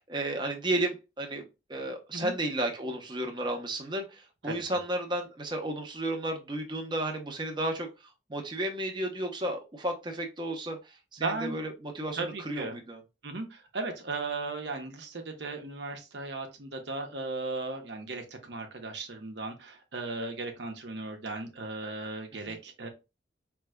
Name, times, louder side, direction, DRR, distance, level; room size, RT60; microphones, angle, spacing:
voice 1, 0.0-1.4 1.7-13.0 22.5-22.6, right 1 dB, 25° right, 3 dB, 0.8 m, -33 dB
voice 2, 11.2-11.6 12.2-12.8 13.2-22.9, right 3 dB, 80° right, 4 dB, 1.0 m, -36 dB
4.8 x 3.4 x 2.2 m, 0.26 s
head